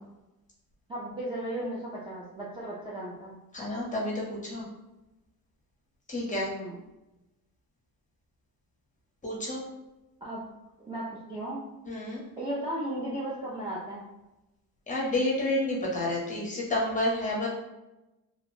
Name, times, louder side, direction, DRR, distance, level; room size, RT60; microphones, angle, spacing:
voice 1, 0.9-3.4 6.5-6.8 10.2-10.5 10.8-11.6 12.4-14.1, right 1 dB, 15° right, -7 dB, 0.4 m, -35 dB
voice 2, 3.5-4.7 6.1-6.5 9.2-9.6 11.9-12.2 14.9-17.5, left 1 dB, 20° left, -4 dB, 0.7 m, -29 dB
2.7 x 2.1 x 3.0 m, 0.98 s
cardioid pair, 150°, 37 cm